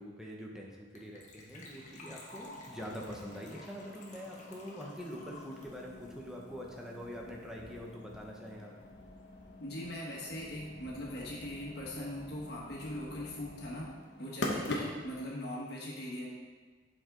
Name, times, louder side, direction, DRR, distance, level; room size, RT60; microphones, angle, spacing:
voice 1, 0.0-8.7, equal, 5° right, -2 dB, 0.9 m, -44 dB
Gurgling / Trickle dribble / Fill (with liquid), 1.0-7.2 7.4-7.5 7.7-7.9 8.2-8.3, left 2 dB, 45° left, 1.2 m, -52 dB
sound 1, 2.4-15.3, left 1 dB, 85° left, 0.9 m, -45 dB
voice 2, 9.6-13.9 14.2-16.3, left 1 dB, 65° left, -4 dB, 1.5 m, -40 dB
7.3 x 4.8 x 3.8 m, 1.4 s
head